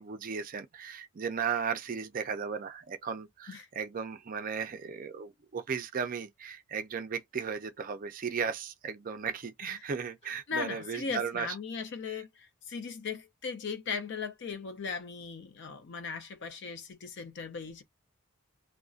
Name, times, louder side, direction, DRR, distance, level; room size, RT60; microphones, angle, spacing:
voice 1, 0.0-11.5, right 6 dB, 40° right, 0.4 m, -36 dB
voice 2, 10.5-17.8, left 5 dB, 55° left, 0.5 m, -38 dB
2.5 x 2.1 x 2.4 m
head